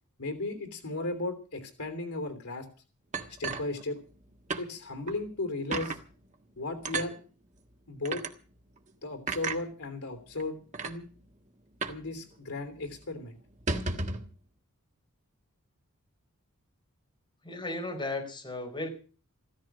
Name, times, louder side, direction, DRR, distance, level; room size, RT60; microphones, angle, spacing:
voice 1, 0.2-2.7 3.4-4.0 4.6-6.0 6.6-7.2 7.9-8.2 9.0-10.6 10.8-11.0 11.9-13.4, left 2 dB, 75° left, 8 dB, 3.2 m, -35 dB
sound 1, 3.1-4.2 4.5-4.7 5.1-5.2 5.7-6.0 6.8-7.1 8.0-8.3 9.3-9.6 10.4-10.5 10.7-11.0 11.8-12.1 12.3-12.4 12.8-13.0 13.5-14.3, right 3 dB, 35° right, 1.6 m, -33 dB
voice 2, 17.4-18.9, left 2 dB, 20° left, 2 dB, 4.6 m, -35 dB
15.5 x 14.0 x 6.1 m, 0.37 s
head